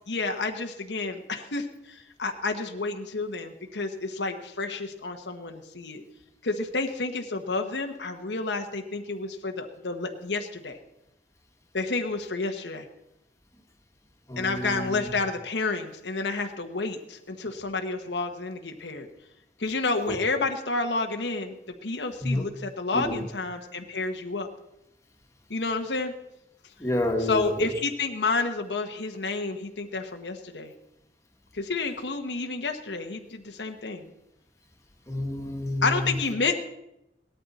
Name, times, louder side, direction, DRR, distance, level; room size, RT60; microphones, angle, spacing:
voice 1, 0.1-6.0 6.4-10.8 11.7-12.9 14.4-19.1 19.6-21.5 21.8-24.5 25.5-26.1 27.2-30.7 31.5-34.1 35.8-36.6, left 3 dB, 90° left, 4 dB, 1.1 m, -30 dB
voice 2, 14.3-15.1 20.1-20.2 22.2-22.4 22.9-23.2 26.8-27.7 35.1-36.1, left 1 dB, 15° left, 3 dB, 1.5 m, -29 dB
18.0 x 13.0 x 4.2 m, 0.88 s
head